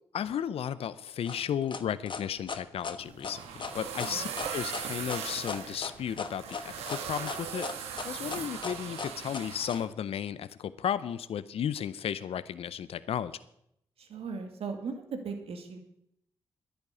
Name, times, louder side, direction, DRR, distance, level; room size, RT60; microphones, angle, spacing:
voice 1, 0.1-3.4 3.7-13.3, left 9 dB, 70° left, 15 dB, 0.6 m, -34 dB
sound 1, 1.3-9.8, left 5 dB, 50° left, 1.3 m, -38 dB
sound 2, 3.0-9.8, right 7 dB, 90° right, 1.3 m, -39 dB
voice 2, 4.0-4.3 14.0-15.8, right 5 dB, 70° right, 5 dB, 2.1 m, -38 dB
11.0 x 10.5 x 8.2 m, 0.76 s
supercardioid pair, 40°, 10 cm